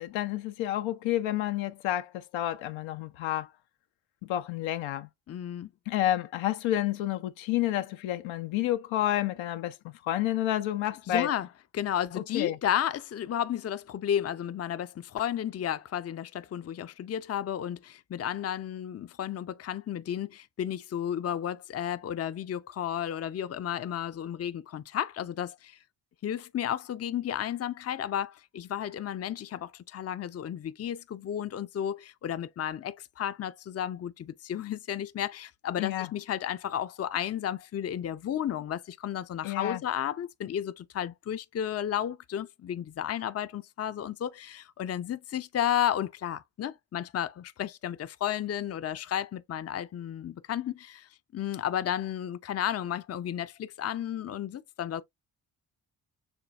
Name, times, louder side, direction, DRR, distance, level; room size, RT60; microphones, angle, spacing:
voice 1, 0.0-3.5 4.2-5.1 5.9-11.3 12.3-12.6 35.8-36.1 39.4-39.8, left 13 dB, 75° left, 0.7 m, -30 dB
voice 2, 5.3-5.7 11.1-11.5 11.7-25.8 26.2-55.0, left 10 dB, 35° left, 0.5 m, -33 dB
7.1 x 2.7 x 2.4 m
supercardioid pair, 50°, 47 cm